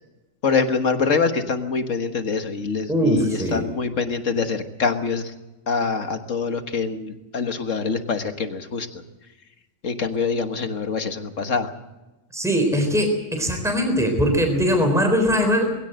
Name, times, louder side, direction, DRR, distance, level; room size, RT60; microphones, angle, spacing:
voice 1, 0.4-5.3 5.7-9.0 9.8-11.7, left 5 dB, 65° left, 7 dB, 1.8 m, -25 dB
voice 2, 2.9-3.6 12.3-15.6, equal, ahead, 4 dB, 3.8 m, -21 dB
21.0 x 17.0 x 7.9 m, 1.1 s
omnidirectional pair, 1.4 m